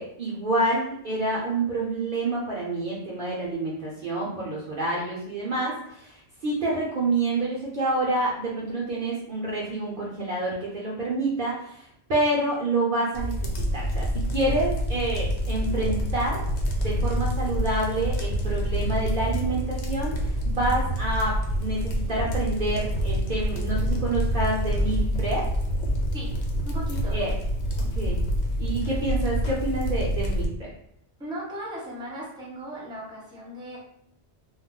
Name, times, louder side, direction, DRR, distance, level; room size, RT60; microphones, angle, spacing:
voice 1, 0.0-16.4 16.8-25.5 27.1-27.4 27.8-28.2 28.6-30.7, right 2 dB, 55° right, -4 dB, 0.7 m, -28 dB
sound 1, 13.1-30.5, equal, 75° left, 0.9 m, -27 dB
voice 2, 26.6-27.2 31.2-33.8, equal, 5° right, -5 dB, 0.7 m, -37 dB
2.3 x 2.1 x 3.6 m, 0.72 s
omnidirectional pair, 1.1 m